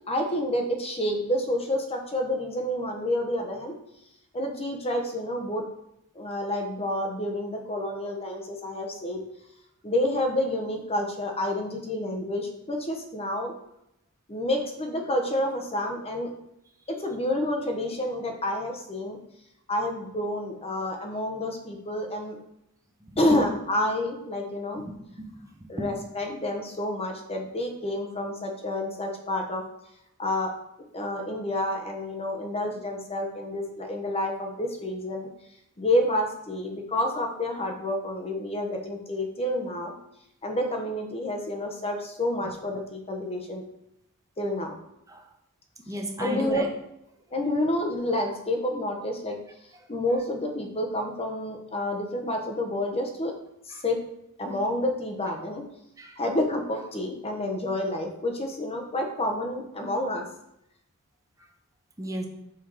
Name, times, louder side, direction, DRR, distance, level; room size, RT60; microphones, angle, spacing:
voice 1, 0.1-3.7 4.3-5.6 6.1-9.2 9.8-13.5 14.3-16.3 16.9-19.2 19.7-22.4 23.2-24.8 25.7-29.6 30.2-30.5 30.9-35.3 35.8-39.9 40.4-43.6 44.4-44.7 46.2-46.6 47.3-49.4 49.9-53.3 53.7-54.0 54.4-55.6 56.2-60.3, left 1 dB, 25° left, 3 dB, 1.0 m, -29 dB
voice 2, 23.0-23.4 24.8-24.9 25.2-25.8 45.1-45.2 45.9-46.7 56.0-56.2 62.0-62.3, right 1 dB, 15° right, 2 dB, 0.9 m, -34 dB
5.8 x 4.6 x 4.8 m, 0.81 s
head